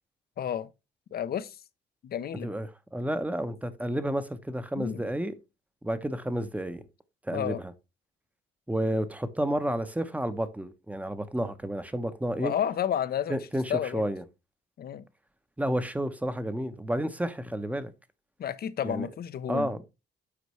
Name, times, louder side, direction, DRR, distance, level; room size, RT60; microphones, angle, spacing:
voice 1, 0.4-0.7 1.1-1.6 2.0-2.5 4.8-5.1 7.3-7.6 12.4-13.4 13.7-14.0 14.8-15.0 18.4-19.7, left 9 dB, 50° left, 0.5 m, -31 dB
voice 2, 2.4-5.4 5.8-6.8 7.2-7.7 8.7-12.5 13.3-14.2 15.6-17.9 18.8-19.1 19.5-19.8, right 1 dB, 5° right, 0.7 m, -31 dB
8.2 x 4.4 x 3.1 m
cardioid pair, 90°, 20 cm